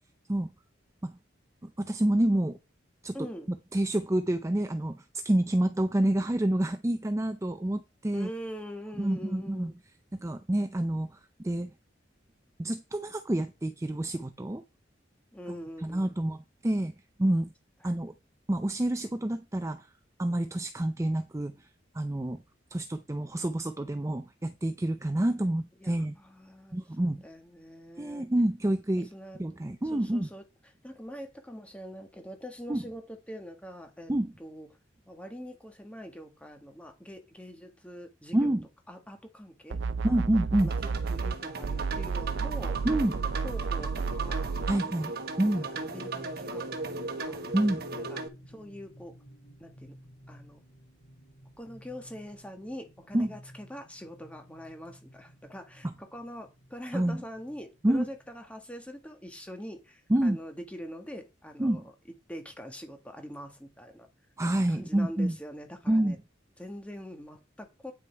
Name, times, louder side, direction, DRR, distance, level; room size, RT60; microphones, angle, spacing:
voice 1, 1.6-2.6 3.0-3.2 3.7-8.3 9.0-9.7 10.1-11.7 12.6-14.6 15.5-16.9 17.2-17.5 17.8-18.1 18.5-19.9 20.2-21.7 21.9-22.4 22.7-26.1 26.7-27.2 28.0-29.1 29.4-30.3 32.7-32.8 34.1-34.3 38.3-38.7 40.0-40.7 42.8-43.2 44.7-45.1 45.4-45.7 47.5-47.8 53.1-53.3 55.8-55.9 56.9-57.2 57.8-58.1 60.1-60.4 61.6-61.8 64.4-65.4 65.9-66.2, right 1 dB, 15° right, 0.5 m, -28 dB
voice 2, 3.1-3.5 8.1-9.7 15.3-16.2 25.8-26.8 27.2-28.3 29.1-29.4 29.8-30.4 30.8-34.1 34.4-34.7 35.1-38.5 38.9-40.3 40.6-42.9 43.2-45.1 45.8-47.5 48.1-49.2 49.6-50.0 50.3-50.6 51.6-61.8 62.3-64.1 64.7-66.2 66.6-67.9, equal, 5° left, 1.7 m, -44 dB
sound 1, 39.7-41.4 41.6-44.8, right 5 dB, 75° right, 0.4 m, -32 dB
sound 2, 40.6-48.3, right 3 dB, 55° right, 1.3 m, -37 dB
sound 3, 41.4-58.6, right 1 dB, 65° left, 6.9 m, -53 dB
9.4 x 6.2 x 4.6 m
head